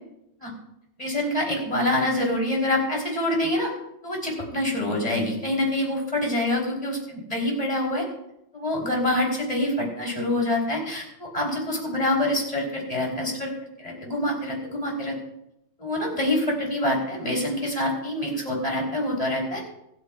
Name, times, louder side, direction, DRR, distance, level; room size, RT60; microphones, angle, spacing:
voice 1, 1.0-3.7 4.0-8.0 8.5-13.5 13.8-15.1 15.8-19.6, left 1 dB, 20° left, -2 dB, 3.7 m, -26 dB
26.0 x 9.2 x 2.4 m, 0.83 s
omnidirectional pair, 2.0 m